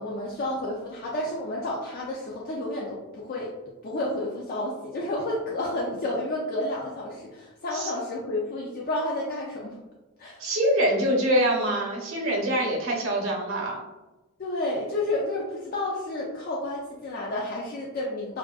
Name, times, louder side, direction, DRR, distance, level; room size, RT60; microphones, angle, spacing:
voice 1, 0.0-3.5 3.8-9.8 10.2-10.4 14.4-18.4, left 1 dB, 45° left, -4 dB, 0.3 m, -31 dB
voice 2, 10.4-13.8, equal, 65° right, -2 dB, 0.7 m, -24 dB
2.5 x 2.4 x 2.3 m, 1.1 s
head